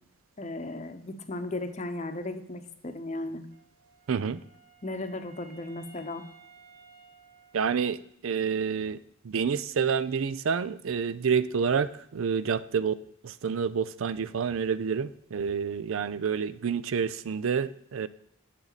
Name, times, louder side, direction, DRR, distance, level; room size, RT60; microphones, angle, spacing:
voice 1, 0.4-3.4 4.8-6.2, left 2 dB, 35° left, 8 dB, 0.8 m, -36 dB
Wind instrument woodwind instrument, 3.5-8.3, right 5 dB, 45° right, 2.6 m, -56 dB
voice 2, 4.1-4.4 7.5-9.0 9.2-12.9 13.2-18.1, right 6 dB, 80° right, 15 dB, 0.5 m, -28 dB
10.0 x 7.6 x 4.0 m, 0.69 s
head